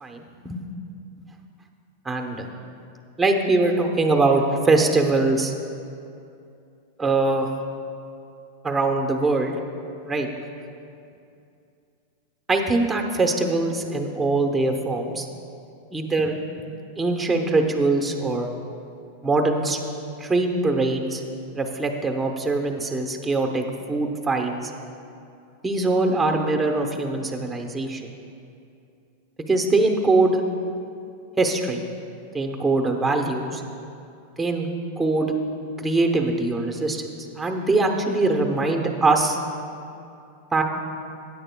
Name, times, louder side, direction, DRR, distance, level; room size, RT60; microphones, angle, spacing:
voice 1, 0.0-0.6 2.0-2.5 3.2-5.5 7.0-7.5 8.6-9.5 10.0-10.3 12.5-15.3 15.9-16.4 17.0-18.5 19.2-19.8 20.2-21.2 21.5-24.7 25.6-28.0 29.5-30.4 31.4-31.8 32.3-33.6 34.4-34.7 35.0-35.3 35.8-37.0 37.4-39.4 40.5-40.6, right 3 dB, 10° right, 3 dB, 0.8 m, -22 dB
16.0 x 9.7 x 2.2 m, 2.6 s
supercardioid pair, 145°, 0 cm